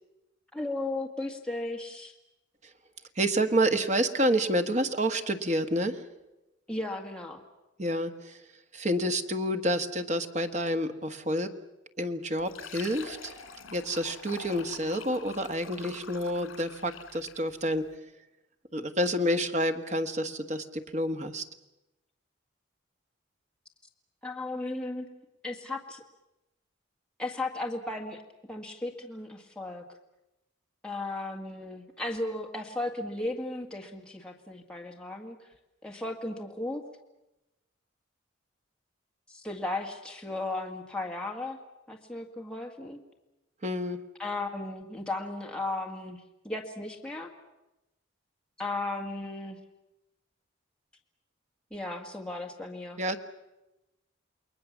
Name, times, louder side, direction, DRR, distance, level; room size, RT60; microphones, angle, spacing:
voice 1, 0.5-2.1 6.7-7.4 24.2-25.1 25.4-26.0 27.2-28.2 28.5-29.8 30.8-35.4 35.8-36.8 39.3-41.6 41.9-43.0 44.2-47.3 48.6-49.6 51.7-53.0, left 2 dB, 5° left, 0 dB, 1.9 m, -35 dB
voice 2, 3.2-6.0 7.8-8.4 8.7-11.5 12.0-13.3 13.7-17.9 18.7-21.4 43.6-44.0 53.0-53.2, equal, 35° right, 7 dB, 1.4 m, -29 dB
Fill (with liquid), 12.4-17.5, left 6 dB, 80° left, 2.2 m, -46 dB
29.0 x 21.5 x 7.3 m, 0.97 s
head